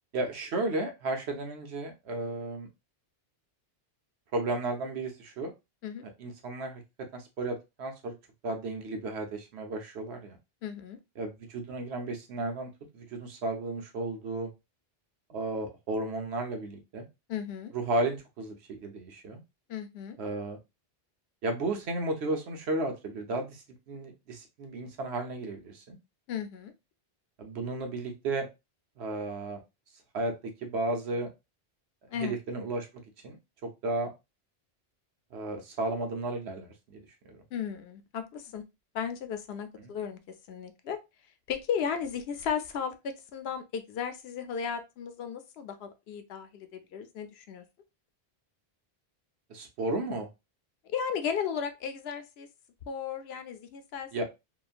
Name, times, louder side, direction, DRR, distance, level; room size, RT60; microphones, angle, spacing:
voice 1, 0.1-2.7 4.3-5.5 6.2-6.8 7.1-8.1 8.4-10.4 11.2-14.5 15.3-17.1 17.7-19.4 20.2-20.6 21.4-26.0 27.4-28.5 29.0-29.6 30.1-30.3 30.6-31.3 32.1-32.9 33.2-33.4 33.8-34.1 35.3-37.0 37.3-37.4 39.8-39.9 49.5-50.3 54.1-54.2, right 2 dB, 85° right, 4 dB, 1.1 m, -33 dB
voice 2, 10.6-11.0 17.3-17.7 19.7-20.2 26.3-26.7 32.1-32.4 37.5-38.6 38.9-40.2 40.5-41.0 41.5-47.6 50.8-52.5 52.9-54.2, left 7 dB, 75° left, 8 dB, 0.8 m, -35 dB
2.9 x 2.2 x 2.4 m, 0.24 s
omnidirectional pair, 1.1 m